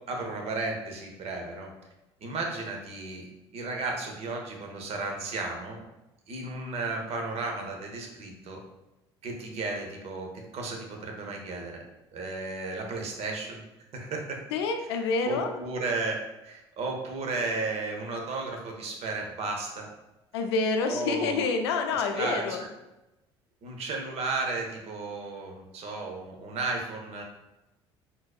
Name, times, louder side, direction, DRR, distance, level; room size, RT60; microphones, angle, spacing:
voice 1, 0.1-1.7 2.2-3.3 3.5-5.8 6.3-8.6 9.2-10.3 10.5-11.8 12.1-13.6 13.9-14.4 15.2-19.9 20.9-21.4 22.1-22.7 23.6-27.2, right 3 dB, 50° right, 1 dB, 0.8 m, -34 dB
voice 2, 14.5-15.6 20.3-22.6, left 4 dB, 75° left, 5 dB, 0.4 m, -28 dB
3.9 x 2.7 x 2.4 m, 0.96 s
hypercardioid pair, 60°, 14 cm